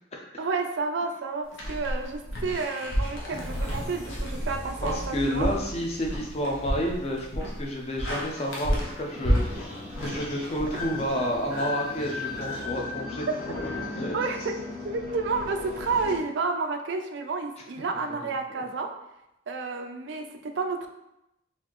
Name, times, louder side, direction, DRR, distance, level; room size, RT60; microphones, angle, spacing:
voice 1, 0.4-5.5 10.0-10.2 13.3-13.4 14.1-14.5 14.8-18.9 19.5-20.9, right 4 dB, 60° right, 5 dB, 0.4 m, -30 dB
sound 1, 1.5-11.4, equal, 80° left, 1.0 m, -31 dB
sound 2, 3.3-8.8, equal, 10° left, 0.9 m, -40 dB
voice 2, 4.8-9.7 10.0-13.3 13.8-14.1, equal, 30° left, 0 dB, 0.5 m, -30 dB
sound 3, 9.1-16.2, left 3 dB, 50° left, 1.3 m, -36 dB
4.1 x 2.6 x 3.0 m, 0.86 s
head